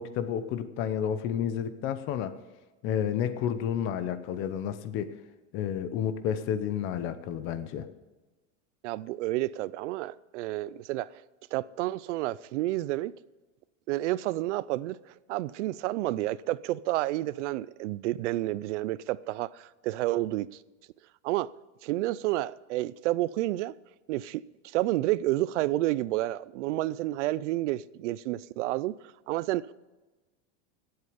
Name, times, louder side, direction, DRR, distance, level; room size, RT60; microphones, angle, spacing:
voice 1, 0.0-2.4 2.8-5.1 5.5-7.9, left 9 dB, 35° left, 0.8 m, -31 dB
voice 2, 8.8-11.2 11.5-13.1 13.9-15.0 15.3-20.5 21.2-21.5 21.8-23.8 24.1-28.9 29.3-29.7, right 16 dB, 80° right, 0.6 m, -30 dB
17.5 x 8.2 x 5.1 m
supercardioid pair, 165°, 35 cm